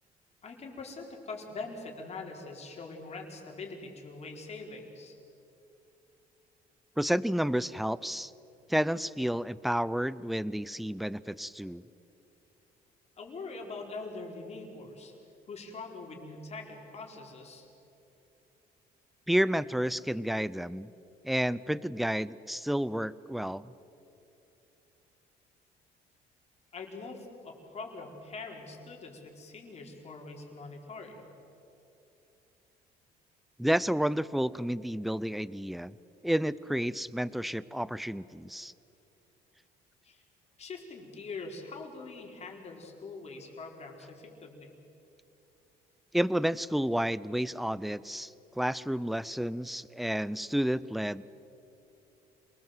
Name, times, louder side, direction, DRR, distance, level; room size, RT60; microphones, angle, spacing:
voice 1, 0.4-5.2 13.2-15.1 15.5-17.7 26.7-31.2 40.0-40.2 40.6-44.7, left 3 dB, 40° left, 1 dB, 4.6 m, -43 dB
voice 2, 7.0-8.3 8.7-11.8 19.3-20.9 21.2-23.6 33.6-35.9 36.2-38.7 46.1-51.2, equal, ahead, 19 dB, 0.5 m, -30 dB
27.5 x 20.0 x 8.0 m, 2.8 s
cardioid pair, 110°, 17 cm